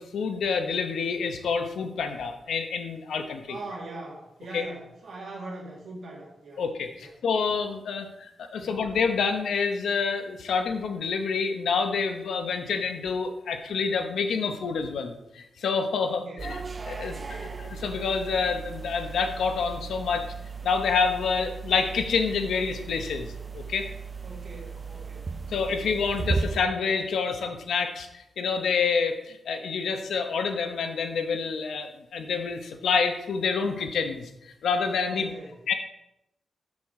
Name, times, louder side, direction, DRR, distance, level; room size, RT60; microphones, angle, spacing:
voice 1, 0.0-3.6 4.5-4.6 6.6-16.6 16.9-17.2 17.6-20.3 20.6-23.9 25.5-35.3 35.7-35.8, left 5 dB, 90° left, 7 dB, 0.8 m, -28 dB
voice 2, 3.5-6.6 7.0-7.1 8.6-8.7 16.1-16.5 17.0-17.6 24.2-25.8 35.1-35.5, right 2 dB, 70° right, -3 dB, 2.0 m, -42 dB
sound 1, 16.4-26.6, right 4 dB, 35° right, 0.4 m, -36 dB
7.4 x 6.3 x 3.7 m, 0.86 s
cardioid pair, 85°, 0 cm